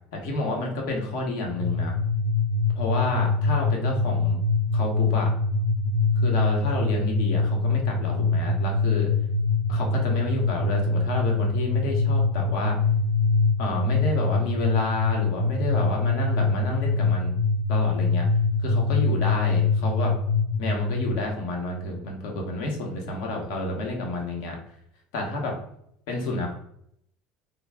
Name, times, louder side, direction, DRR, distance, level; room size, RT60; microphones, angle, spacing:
voice 1, 0.1-1.9 2.7-4.4 4.7-5.3 6.2-9.1 9.7-12.8 13.6-17.3 17.7-18.2 18.6-20.1 20.6-24.6 25.1-25.5 26.1-26.5, left 2 dB, 75° left, 1 dB, 0.9 m, -30 dB
sound 1, 1.6-21.1, left 3 dB, 25° left, 0.5 m, -24 dB
3.3 x 2.2 x 3.4 m, 0.72 s
cardioid pair, 150°, 3 cm